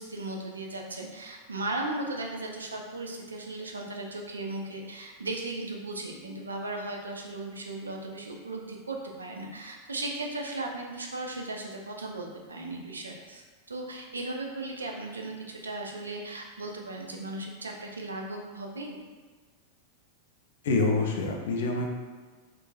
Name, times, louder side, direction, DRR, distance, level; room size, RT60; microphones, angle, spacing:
voice 1, 0.0-19.0, right 2 dB, 75° right, 1 dB, 0.4 m, -36 dB
voice 2, 20.6-21.9, left 3 dB, 60° left, 1 dB, 0.4 m, -26 dB
3.7 x 2.4 x 2.3 m, 1.4 s
figure-of-eight pair, 90°, 0 cm